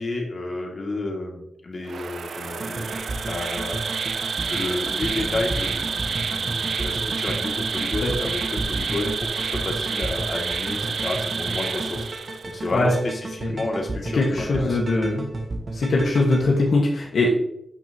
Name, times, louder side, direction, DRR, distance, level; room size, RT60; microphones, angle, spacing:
voice 1, 0.0-3.8 4.5-14.9, left 2 dB, 55° left, -1 dB, 2.4 m, -31 dB
Insect, 1.8-12.6, right 5 dB, 85° right, 0.6 m, -29 dB
sound 1, 2.5-16.4, right 2 dB, 50° right, 1.2 m, -33 dB
voice 2, 14.1-15.2 15.7-17.3, left 2 dB, 85° left, -2 dB, 1.6 m, -21 dB
13.0 x 6.2 x 3.0 m, 0.80 s
wide cardioid pair, 95°, 0 cm